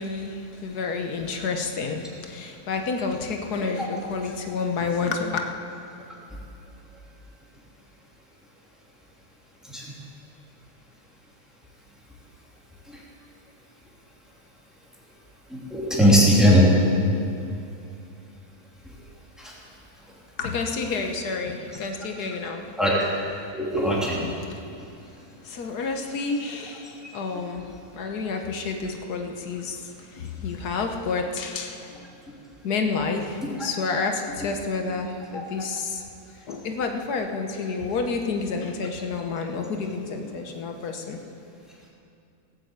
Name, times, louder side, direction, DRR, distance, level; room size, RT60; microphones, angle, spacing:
voice 1, 0.0-5.5 20.4-22.6 24.2-24.3 25.4-32.1 32.6-36.0 36.5-41.2, left 4 dB, 85° left, 4 dB, 1.6 m, -29 dB
voice 2, 15.5-16.7 19.4-19.5 22.8-23.1 23.5-24.2 33.4-33.5 35.3-35.4, equal, ahead, -6 dB, 3.1 m, -20 dB
18.0 x 7.7 x 8.1 m, 2.6 s
omnidirectional pair, 1.6 m